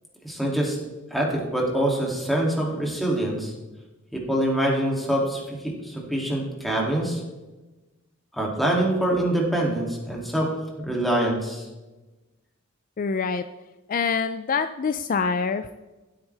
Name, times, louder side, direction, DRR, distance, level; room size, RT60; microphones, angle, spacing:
voice 1, 0.2-0.8 1.1-3.5 4.1-7.2 8.3-11.7, right 1 dB, ahead, -2 dB, 2.6 m, -25 dB
voice 2, 13.0-13.4 13.9-15.7, left 5 dB, 45° left, 10 dB, 0.4 m, -25 dB
15.0 x 8.8 x 3.4 m, 1.1 s
head